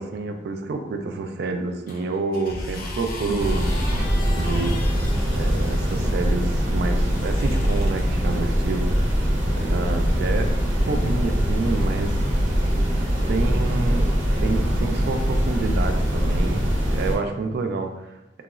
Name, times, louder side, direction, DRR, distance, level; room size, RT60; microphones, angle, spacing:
voice 1, 0.0-3.8 4.3-4.8 5.3-9.2 9.6-10.6 10.8-12.2 13.3-16.6 16.9-18.2, right 3 dB, 60° right, 6 dB, 0.3 m, -28 dB
sound 1, 1.9-6.2 7.0-8.0 9.0-9.1, left 3 dB, 50° left, 0.4 m, -39 dB
sound 2, 2.5-9.3, equal, 15° left, 0.9 m, -37 dB
sound 3, 3.4-17.2, equal, 90° right, 0.7 m, -22 dB
3.8 x 2.0 x 2.3 m, 0.94 s
head